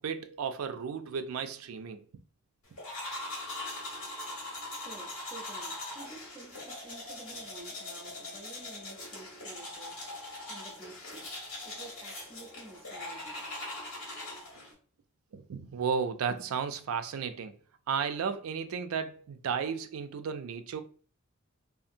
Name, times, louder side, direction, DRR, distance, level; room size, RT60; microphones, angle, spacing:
voice 1, 0.0-2.0 15.3-17.6 17.9-20.8, right 6 dB, 80° right, 0.4 m, -34 dB
sound 1, 2.8-14.7, left 2 dB, 90° left, 1.3 m, -41 dB
voice 2, 4.8-10.0 10.5-11.3 11.6-13.5, right 3 dB, 10° right, 0.5 m, -50 dB
2.7 x 2.4 x 2.5 m
head